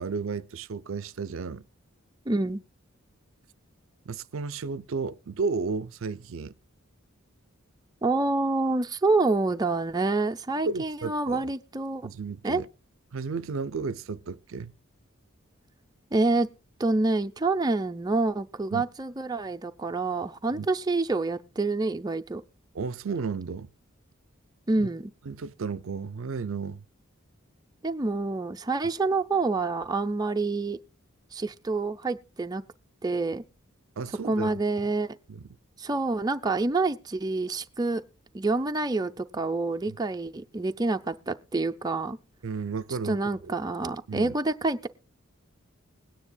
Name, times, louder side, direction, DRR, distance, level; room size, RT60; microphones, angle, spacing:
voice 1, 0.0-1.6 4.1-6.5 10.6-11.5 12.0-12.7 13.1-14.7 18.7-18.8 20.5-20.7 22.7-23.7 24.8-24.9 25.3-26.8 34.0-34.6 35.3-35.4 39.9-40.0 42.4-43.2 44.1-44.3, right 4 dB, 65° right, 0.5 m, -33 dB
voice 2, 2.3-2.6 8.0-12.1 12.4-12.6 16.1-16.5 16.8-22.4 24.7-25.1 27.8-30.8 31.3-32.6 33.0-33.4 34.2-35.2 35.8-38.0 38.3-42.2 42.9-44.9, right 3 dB, 20° right, 0.5 m, -27 dB
21.0 x 9.8 x 2.3 m
head